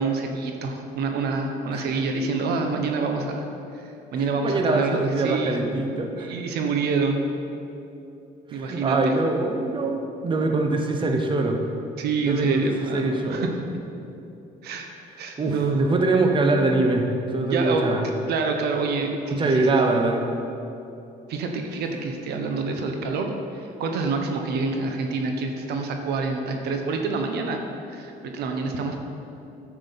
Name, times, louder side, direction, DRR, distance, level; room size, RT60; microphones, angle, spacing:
voice 1, 0.0-3.4 3.7-5.8 6.2-7.2 8.5-9.1 12.0-13.5 14.6-14.9 15.2-15.8 17.5-17.8 18.3-19.7 21.3-29.0, right 4 dB, 75° right, 4 dB, 1.2 m, -27 dB
voice 2, 4.4-6.3 8.5-11.6 12.3-13.5 15.4-17.1 17.3-18.0 19.3-20.2, right 2 dB, 30° right, 3 dB, 1.1 m, -23 dB
10.0 x 6.3 x 7.0 m, 2.8 s
cardioid pair, 110°, 17 cm